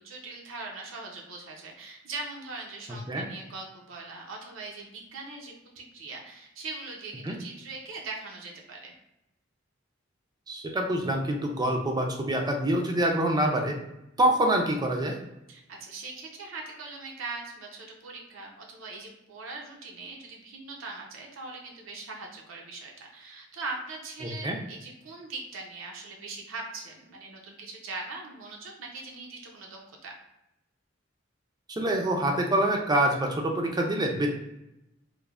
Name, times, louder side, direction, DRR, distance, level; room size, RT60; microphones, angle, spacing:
voice 1, 0.0-8.9 15.5-30.2, right 3 dB, 85° right, 0 dB, 0.5 m, -41 dB
voice 2, 10.5-13.7 14.2-15.1 24.4-24.6 31.7-34.3, right 1 dB, 20° right, 2 dB, 0.4 m, -26 dB
3.1 x 2.0 x 2.3 m, 0.88 s
head